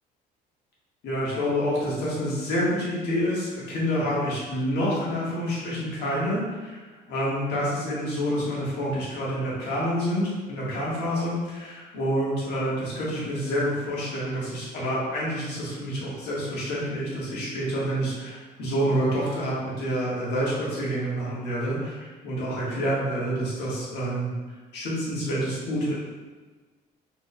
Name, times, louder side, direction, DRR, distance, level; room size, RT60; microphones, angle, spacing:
voice 1, 1.0-6.8 7.1-24.3 24.7-25.9, equal, 80° left, -6 dB, 1.5 m, -28 dB
4.2 x 3.5 x 2.2 m, 1.4 s
cardioid pair, 110°, 17 cm